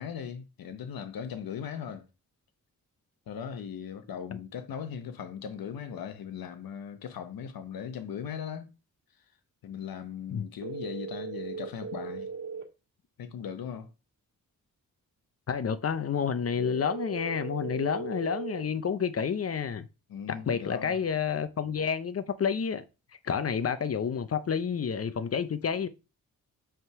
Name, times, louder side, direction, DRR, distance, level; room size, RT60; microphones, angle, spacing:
voice 1, 0.0-2.0 3.3-8.7 9.6-12.3 13.2-13.9 20.1-21.0, left 8 dB, 85° left, 1.0 m, -38 dB
sound 1, 10.6-12.6 16.6-18.6, right 5 dB, 50° right, 1.6 m, -38 dB
voice 2, 15.5-19.9 20.3-22.8 23.2-25.9, left 7 dB, 45° left, 0.6 m, -29 dB
5.6 x 3.7 x 4.6 m
cardioid pair, 75°, 34 cm